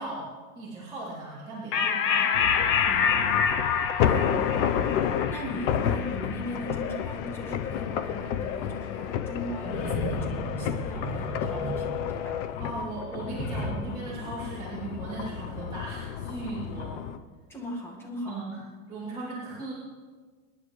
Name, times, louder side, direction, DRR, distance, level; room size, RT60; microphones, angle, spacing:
voice 1, 0.0-2.2 4.0-4.1 12.6-17.0 18.2-18.6 18.9-19.7, right 3 dB, 10° right, -11 dB, 3.2 m, -37 dB
sound 1, 1.7-8.6, left 7 dB, 35° left, 0.9 m, -28 dB
voice 2, 2.1-2.5 2.8-3.4 4.0-4.7 5.3-12.5 17.5-18.4, equal, 5° left, -1 dB, 1.8 m, -39 dB
sound 2, 2.3-17.2, left 9 dB, 60° left, 0.9 m, -31 dB
sound 3, 9.6-12.5 13.2-13.7, equal, 85° left, 4.1 m, -34 dB
26.0 x 10.5 x 3.2 m, 1.5 s
supercardioid pair, 170°, 40 cm